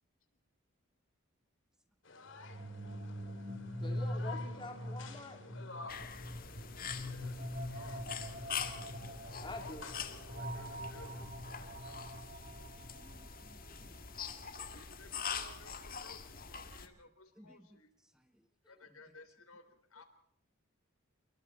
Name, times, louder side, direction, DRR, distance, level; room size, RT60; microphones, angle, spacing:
sound 1, 2.0-11.3, left 3 dB, 60° left, 2.6 m, -53 dB
sound 2, 2.3-14.1, equal, 45° right, 3.0 m, -43 dB
voice 1, 3.8-5.4 9.4-9.8, left 1 dB, 25° left, 3 dB, 3.4 m, -46 dB
sound 3, 5.9-16.9, left 6 dB, 45° left, 1.9 m, -44 dB
voice 2, 7.0-7.4 7.7-8.1 9.5-12.1 14.7-17.9 18.7-20.1, left 3 dB, 85° left, 9 dB, 3.7 m, -57 dB
voice 3, 12.8-14.0 14.3-14.4 17.4-18.8, equal, 5° right, 8 dB, 1.3 m, -63 dB
29.0 x 22.5 x 4.3 m, 0.71 s
head